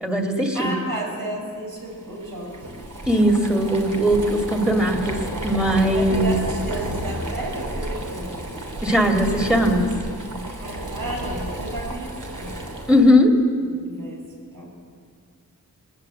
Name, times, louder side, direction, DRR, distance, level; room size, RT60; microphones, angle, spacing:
voice 1, 0.0-0.7 3.1-6.3 8.8-9.8 12.9-13.3, equal, 5° right, 3 dB, 2.2 m, -19 dB
voice 2, 0.5-2.6 5.9-8.3 10.6-12.5 13.6-14.2 14.5-14.8, right 1 dB, 80° right, -1 dB, 5.5 m, -32 dB
Boiling, 1.8-13.1, right 1 dB, 60° right, 3.2 m, -32 dB
21.5 x 18.5 x 7.5 m, 2.1 s
wide cardioid pair, 95°, 35 cm